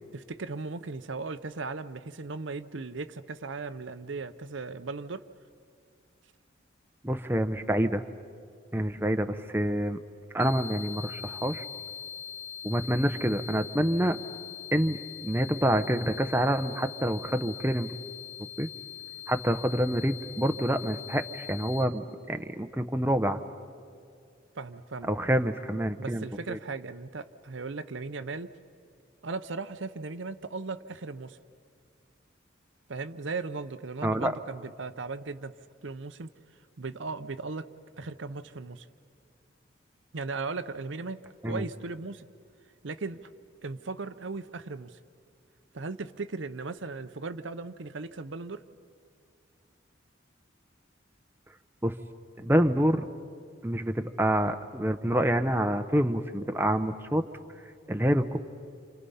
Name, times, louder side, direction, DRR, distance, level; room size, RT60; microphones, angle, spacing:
voice 1, 0.1-5.2 24.6-25.1 26.0-28.5 29.2-31.4 32.9-35.5 35.8-36.3 36.8-37.7 38.0-38.9 40.1-41.2 41.4-42.3 42.8-43.2 43.6-45.0 45.7-48.6, right 3 dB, 70° right, 11 dB, 0.7 m, -37 dB
voice 2, 7.0-8.0 8.7-10.0 10.3-11.6 12.6-14.2 14.7-17.9 18.6-18.7 19.3-23.4 25.1-26.6 34.0-34.3 41.4-41.6 51.8-51.9 52.4-53.0 53.6-57.2 57.9-58.4, right 1 dB, 10° right, 7 dB, 0.7 m, -27 dB
sound 1, 10.4-21.8, left 10 dB, 40° left, 2.0 m, -42 dB
29.0 x 28.0 x 5.6 m, 2.3 s
head